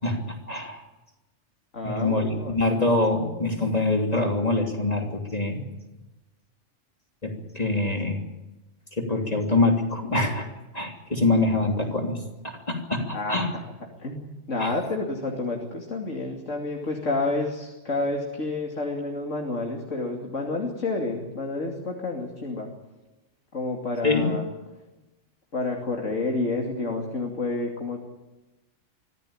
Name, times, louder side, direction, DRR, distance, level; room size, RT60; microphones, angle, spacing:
voice 1, 0.0-0.8 1.8-5.6 7.2-8.2 8.9-10.5 10.7-12.2 12.4-13.5 14.6-14.7 16.8-16.9 24.0-24.3, left 2 dB, 30° left, 2 dB, 3.3 m, -25 dB
voice 2, 1.7-2.8 13.1-13.4 14.0-22.7 23.5-24.4 25.5-28.0, left 2 dB, 80° left, 1 dB, 3.2 m, -29 dB
24.5 x 16.5 x 8.8 m, 1.1 s
omnidirectional pair, 1.3 m